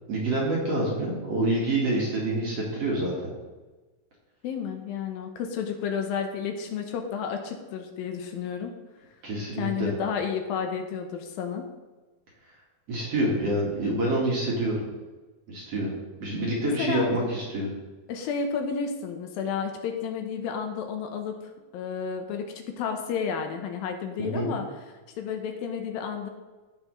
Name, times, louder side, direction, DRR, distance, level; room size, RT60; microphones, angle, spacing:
voice 1, 0.1-3.3 9.2-9.9 12.9-14.9 15.5-15.9 16.2-17.7 24.2-24.5, right 1 dB, 50° right, -4 dB, 2.3 m, -27 dB
voice 2, 4.4-8.7 9.6-11.7 16.6-17.1 18.1-21.4 21.7-24.7 25.2-26.3, left 6 dB, 75° left, 4 dB, 2.5 m, -31 dB
15.5 x 5.7 x 3.1 m, 1.2 s
omnidirectional pair, 4.3 m